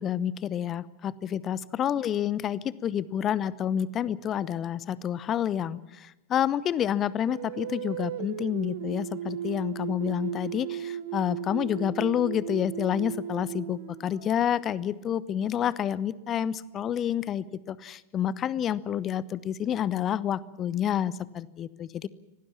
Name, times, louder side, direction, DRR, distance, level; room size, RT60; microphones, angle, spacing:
voice 1, 0.0-22.1, left 9 dB, 30° left, 20 dB, 0.9 m, -29 dB
sound 1, 7.3-14.6, right 11 dB, 55° right, 1.0 m, -36 dB
25.0 x 18.5 x 7.3 m, 1.0 s
figure-of-eight pair, 90°, 0 cm